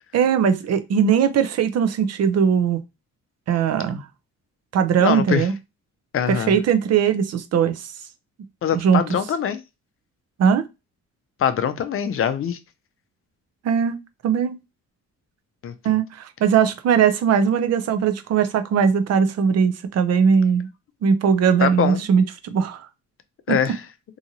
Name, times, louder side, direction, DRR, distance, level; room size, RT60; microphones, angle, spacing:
voice 1, 0.1-2.8 3.5-4.1 4.7-5.5 6.3-7.9 8.7-9.0 10.4-10.7 13.6-14.0 14.2-14.6 15.8-20.7 21.0-22.9 23.5-23.6, right 7 dB, 55° right, 0.6 m, -19 dB
voice 2, 5.0-5.5 6.1-6.5 8.6-9.6 11.4-12.6 15.6-16.0 21.6-22.0 23.5-23.8, left 8 dB, 45° left, 0.5 m, -23 dB
2.8 x 2.5 x 2.7 m
cardioid pair, 90°, 30 cm